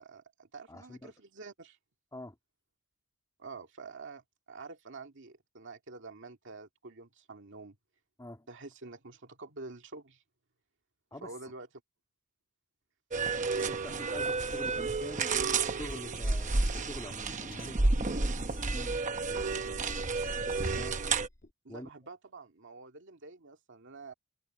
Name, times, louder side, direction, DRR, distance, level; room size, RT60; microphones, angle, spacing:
voice 1, 0.0-1.8 3.4-7.8 8.5-10.2 11.2-11.7 21.6-24.1, right 3 dB, 60° right, 2.2 m, -48 dB
voice 2, 0.7-1.1 2.1-2.4 8.2-8.5 11.1-11.3 13.5-19.9 20.3-21.0 21.7-21.9, left 1 dB, 15° left, 2.6 m, -46 dB
sound 1, 13.1-21.3, right 3 dB, 35° right, 1.0 m, -31 dB
Drum kit, 13.5-21.5, left 2 dB, 45° left, 1.7 m, -50 dB
head